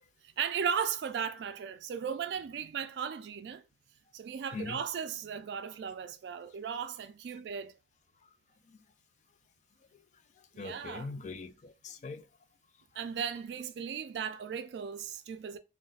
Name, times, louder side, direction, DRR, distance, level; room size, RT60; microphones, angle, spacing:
voice 1, 0.4-3.6 4.1-7.7 10.5-11.1 13.0-15.6, right 7 dB, 70° right, 0.3 m, -36 dB
voice 2, 10.4-12.3, left 4 dB, 40° left, 0.3 m, -42 dB
2.4 x 2.1 x 3.8 m
head